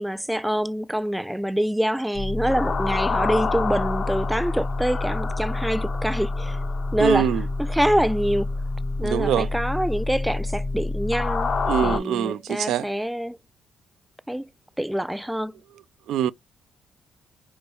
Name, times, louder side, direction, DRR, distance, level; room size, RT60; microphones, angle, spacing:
voice 1, 0.0-6.6 6.9-7.3 7.6-8.5 9.0-13.4 14.3-14.5 14.8-15.5, equal, 5° right, 0.3 m, -25 dB
sound 1, 2.2-12.0, left 3 dB, 45° left, 0.6 m, -27 dB
voice 2, 7.0-7.4 9.0-9.5 11.7-12.9 16.1-16.3, right 11 dB, 80° right, 0.4 m, -24 dB
4.5 x 2.6 x 3.3 m
cardioid pair, 90°, 0 cm